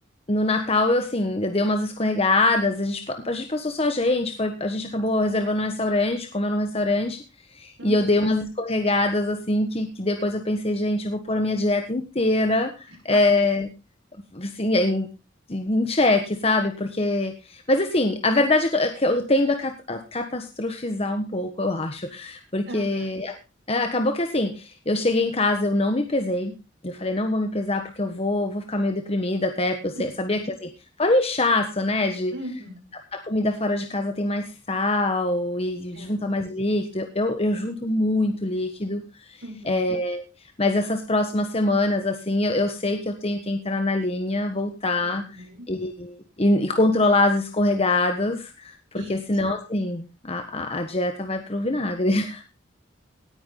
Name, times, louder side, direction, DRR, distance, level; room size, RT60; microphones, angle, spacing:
voice 1, 0.3-7.2 7.6-13.7 14.3-15.1 15.5-23.4 23.7-26.5 26.8-30.7 31.0-32.3 33.1-39.0 39.7-40.2 40.6-45.2 45.7-52.6, left 2 dB, 30° left, 5 dB, 1.4 m, -24 dB
voice 2, 7.8-8.3 13.1-13.4 22.7-23.1 29.9-30.1 30.3-30.4 32.3-32.8 35.9-36.1 39.4-39.9 45.0-45.6 48.9-49.3, equal, 85° right, 1 dB, 5.5 m, -39 dB
18.0 x 9.6 x 3.9 m, 0.28 s
head